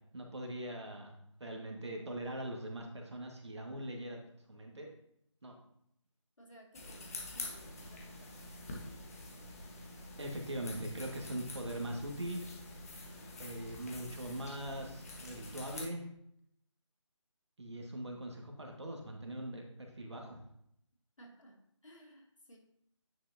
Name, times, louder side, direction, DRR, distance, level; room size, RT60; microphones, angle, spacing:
voice 1, 0.1-1.2 1.4-4.2 4.5-4.9 5.4-5.5 10.2-12.5 13.4-16.1 17.6-20.4, right 1 dB, 60° right, 2 dB, 1.8 m, -41 dB
voice 2, 6.4-9.1 21.2-22.6, right 1 dB, 75° left, 0 dB, 2.5 m, -58 dB
sound 1, 6.7-15.8, left 2 dB, 30° left, 1.4 m, -47 dB
9.8 x 5.9 x 2.8 m, 0.74 s
figure-of-eight pair, 160°, 16 cm